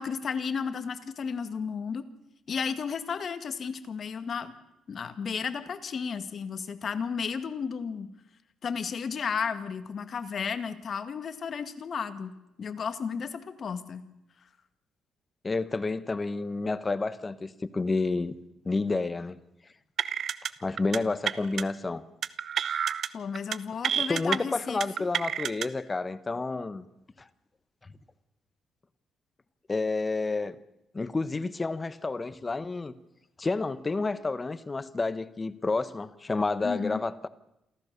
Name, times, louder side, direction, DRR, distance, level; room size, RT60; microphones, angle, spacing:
voice 1, 0.0-2.1 2.5-4.5 4.9-8.1 8.6-12.3 12.6-14.0 23.1-25.1 36.6-37.0, left 6 dB, 50° left, 1.8 m, -33 dB
voice 2, 15.4-18.3 18.6-19.4 20.6-22.0 24.1-26.8 27.2-27.3 29.7-30.5 30.9-32.9 33.4-37.3, left 3 dB, 25° left, 1.2 m, -30 dB
sound 1, 20.0-20.5 20.8-21.0 21.3-21.6 22.2-23.1 23.3-23.6 23.8-24.4 24.8-25.7, right 8 dB, 60° right, 0.8 m, -29 dB
28.0 x 13.5 x 6.8 m
cardioid pair, 90°, 0 cm